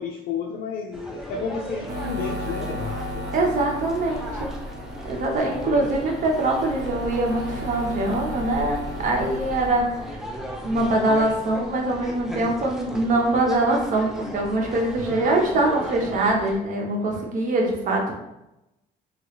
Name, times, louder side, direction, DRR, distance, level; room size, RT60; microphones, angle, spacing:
voice 1, 0.0-3.3 5.4-6.1 15.0-15.2 17.1-17.3, left 5 dB, 65° left, -1 dB, 0.5 m, -32 dB
sound 1, 0.9-16.6, equal, ahead, 0.5 m, -36 dB
sound 2, 1.9-10.1, equal, 75° right, 1.0 m, -35 dB
voice 2, 3.3-4.5 5.0-10.0 10.6-18.1, right 2 dB, 50° right, 0 dB, 0.8 m, -23 dB
3.0 x 2.4 x 3.0 m, 0.91 s
cardioid pair, 110°, 17 cm